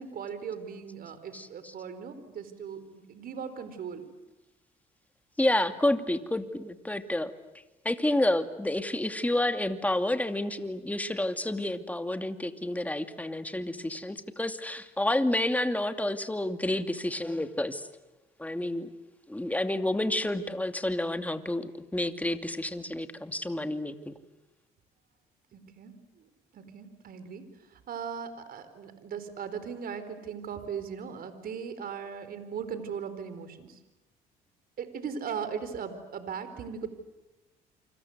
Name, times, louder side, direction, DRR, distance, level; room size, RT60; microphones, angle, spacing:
voice 1, 0.0-4.1 25.5-26.3 26.5-27.4 27.7-33.8 34.8-36.9, right 7 dB, 60° right, 11 dB, 4.4 m, -38 dB
voice 2, 1.3-1.7 5.4-7.3 7.8-17.9 18.4-18.9 19.3-24.1, left 1 dB, 10° left, 8 dB, 2.5 m, -29 dB
29.0 x 26.0 x 8.1 m, 1.0 s
supercardioid pair, 75°, 17 cm